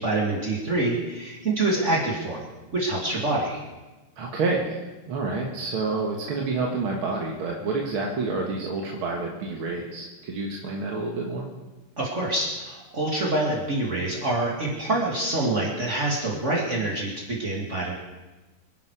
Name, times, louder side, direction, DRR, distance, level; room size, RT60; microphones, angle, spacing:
voice 1, 0.0-2.5 2.7-3.6 12.0-17.9, right 2 dB, 35° right, -3 dB, 2.7 m, -26 dB
voice 2, 4.2-11.5, right 3 dB, 90° right, -1 dB, 2.4 m, -28 dB
25.5 x 11.5 x 4.9 m, 1.2 s
omnidirectional pair, 2.2 m